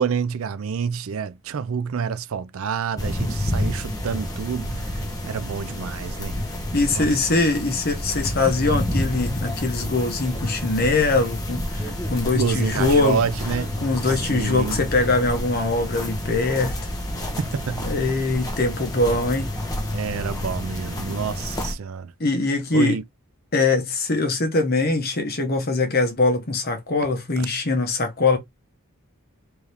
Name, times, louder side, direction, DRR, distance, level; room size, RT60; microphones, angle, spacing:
voice 1, 0.0-6.3 6.9-7.1 12.3-13.7 14.0-14.8 17.4-17.8 19.9-22.1 22.7-23.0, right 6 dB, 70° right, 0.4 m, -28 dB
sound 1, 3.0-21.7, left 1 dB, 15° left, 1.1 m, -29 dB
voice 2, 6.7-13.2 13.8-16.8 17.8-19.6 22.2-23.0 23.5-28.4, left 3 dB, 45° left, 1.0 m, -22 dB
4.6 x 2.7 x 3.4 m
head